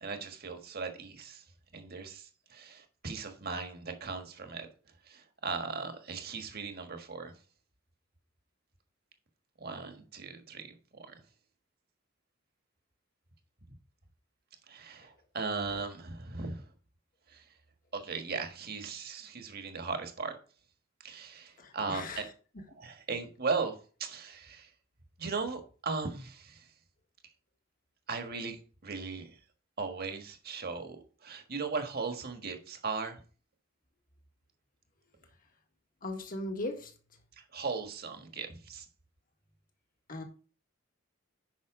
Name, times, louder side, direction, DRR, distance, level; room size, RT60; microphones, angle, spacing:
voice 1, 0.0-1.4 1.7-4.7 5.1-7.3 9.6-10.7 11.1-11.2 14.7-16.6 17.3-17.4 17.9-20.3 21.0-22.2 22.8-23.7 24.0-24.7 25.2-26.6 28.1-29.3 29.8-33.2 37.4-38.8, right 4 dB, 50° right, 1.5 m, -37 dB
voice 2, 21.6-22.3 36.0-36.9 40.1-40.2, left 2 dB, 45° left, 1.7 m, -38 dB
9.5 x 5.7 x 3.7 m
head